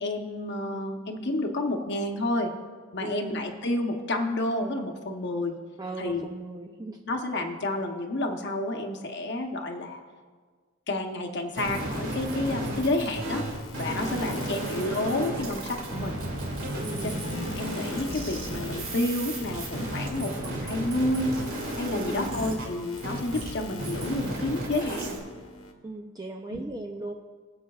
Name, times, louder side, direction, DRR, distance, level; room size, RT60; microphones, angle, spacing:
voice 1, 0.0-2.5 2.9-5.6 6.0-6.3 7.1-10.0 10.9-13.5 13.7-16.2 17.0-21.3 21.8-25.2 26.5-26.6, left 2 dB, 50° left, 4 dB, 0.9 m, -30 dB
voice 2, 3.0-3.3 5.8-7.0 13.9-14.7 16.8-17.2 21.9-22.4 25.8-27.1, right 2 dB, 15° right, 3 dB, 0.4 m, -37 dB
sound 1, 11.5-23.5 23.8-25.2, right 1 dB, 70° right, 2.3 m, -33 dB
sound 2, 11.7-25.7, left 3 dB, 85° left, 1.2 m, -47 dB
sound 3, 11.8-15.9, equal, 35° right, 1.5 m, -49 dB
21.0 x 8.0 x 2.3 m, 1.5 s
head